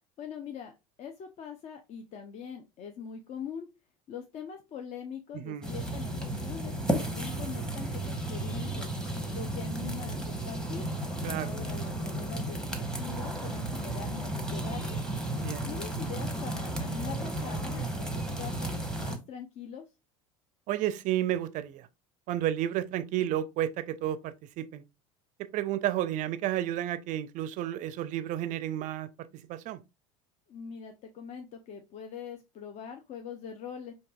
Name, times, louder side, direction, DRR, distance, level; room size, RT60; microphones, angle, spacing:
voice 1, 0.2-3.7 4.1-8.9 9.3-10.9 11.4-15.0 15.6-19.9 30.5-33.9, left 7 dB, 40° left, 0.5 m, -42 dB
sound 1, 5.6-19.2, right 1 dB, 5° left, 0.9 m, -33 dB
voice 2, 11.2-11.5 15.4-15.7 20.7-21.8 22.3-24.8 25.5-29.1 29.5-29.8, right 12 dB, 45° right, 0.4 m, -31 dB
4.6 x 2.7 x 2.3 m
hypercardioid pair, 75°, 18 cm